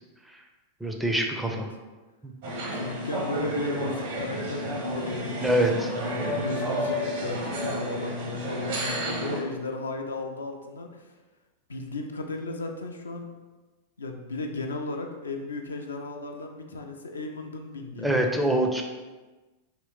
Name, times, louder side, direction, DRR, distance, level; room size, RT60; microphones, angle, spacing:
voice 1, 0.8-1.7 2.2-2.3 5.4-5.9 18.0-18.8, right 1 dB, 5° right, 2 dB, 0.4 m, -25 dB
sound 1, 2.4-9.4, equal, 55° right, 0.7 m, -31 dB
voice 2, 2.7-5.4 5.7-11.1 11.7-13.3 14.0-18.3, left 3 dB, 70° left, 3 dB, 0.3 m, -35 dB
2.9 x 2.6 x 3.1 m, 1.2 s
figure-of-eight pair, 90°, 0 cm